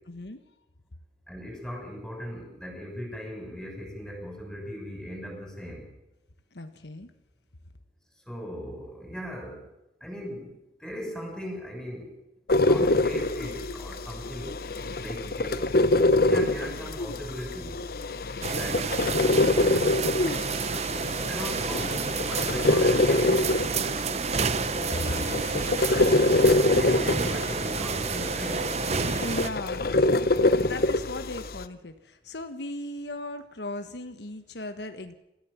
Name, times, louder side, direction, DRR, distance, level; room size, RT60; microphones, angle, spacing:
voice 1, 0.1-0.4 6.5-7.1 24.9-26.1 29.2-35.1, left 1 dB, 75° left, 8 dB, 1.3 m, -37 dB
voice 2, 1.3-5.8 8.3-9.6 10.0-10.5 10.8-12.1 12.6-14.5 15.0-15.7 16.3-17.9 18.5-18.9 19.4-19.8 21.3-23.4 26.7-28.7, equal, 5° left, 1 dB, 7.1 m, -38 dB
coffee machine ending, 12.5-31.6, left 2 dB, 60° left, 0.9 m, -25 dB
sound 1, 18.4-29.5, right 5 dB, 40° right, 0.7 m, -30 dB
27.0 x 15.0 x 7.3 m, 0.90 s
head